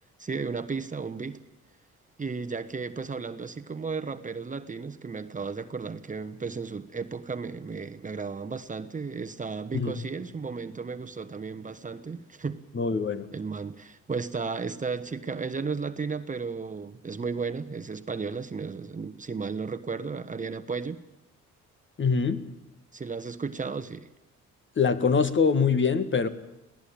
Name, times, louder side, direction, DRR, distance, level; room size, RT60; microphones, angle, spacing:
voice 1, 0.2-1.4 2.2-12.6 13.3-21.0 22.9-24.1, right 4 dB, 25° right, 1.1 m, -34 dB
voice 2, 12.7-13.3 22.0-22.4 24.8-26.3, left 5 dB, 40° left, 1.8 m, -24 dB
23.0 x 17.0 x 8.7 m
cardioid pair, 90°, 30 cm